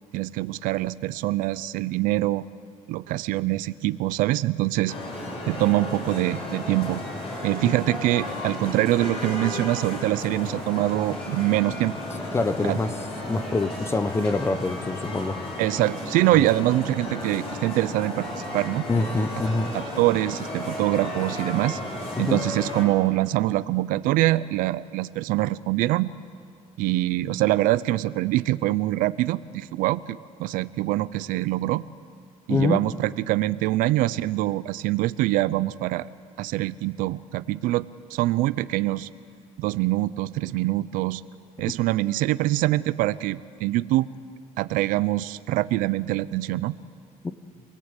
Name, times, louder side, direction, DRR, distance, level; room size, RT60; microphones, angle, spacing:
voice 1, 0.1-2.4 2.9-4.9 5.4-7.0 7.4-11.9 12.6-12.8 15.6-18.9 19.7-21.8 22.2-26.1 26.8-31.8 32.5-36.1 36.4-39.1 39.6-41.2 41.6-44.1 44.6-46.8, right 16 dB, 80° right, 16 dB, 0.6 m, -24 dB
sound 1, 4.9-22.8, left 1 dB, 45° left, 6.3 m, -34 dB
voice 2, 12.3-12.9 13.3-15.4 16.4-16.5 18.9-19.7 22.2-22.4 32.5-32.8 47.2-47.3, left 3 dB, 20° left, 12 dB, 0.9 m, -25 dB
27.0 x 18.0 x 9.1 m, 2.3 s
cardioid pair, 135°, 14 cm